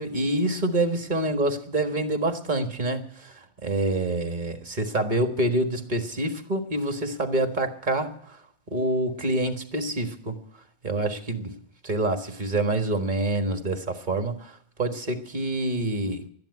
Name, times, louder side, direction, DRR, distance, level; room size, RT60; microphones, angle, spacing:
voice 1, 0.0-8.4 8.7-10.4 10.8-11.6 11.8-16.3, right 2 dB, 40° right, 1.6 m, -27 dB
12.5 x 10.5 x 9.6 m
omnidirectional pair, 1.3 m